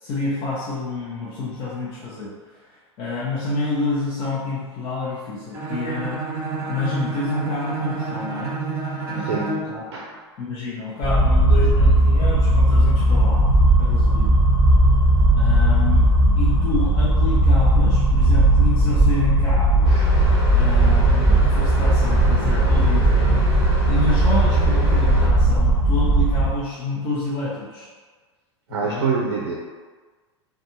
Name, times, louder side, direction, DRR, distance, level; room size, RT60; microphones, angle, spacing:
voice 1, 0.0-2.3 3.0-6.2 6.7-8.5 9.1-9.8 10.4-13.4 13.8-14.4 15.4-16.0 16.4-20.0 20.5-23.4 23.9-27.9 28.7-29.0, left 2 dB, 40° left, -9 dB, 0.6 m, -28 dB
Bowed string instrument, 5.5-9.8, right 4 dB, 20° right, 0.9 m, -29 dB
voice 2, 9.1-9.5 9.9-10.1 28.7-29.6, right 5 dB, 65° right, -2 dB, 0.4 m, -25 dB
sound 1, 11.0-26.5, right 1 dB, 20° left, 1.0 m, -17 dB
sound 2, 19.8-25.3, right 1 dB, 70° left, 1.3 m, -32 dB
2.4 x 2.3 x 2.8 m, 1.4 s
figure-of-eight pair, 90°, 15 cm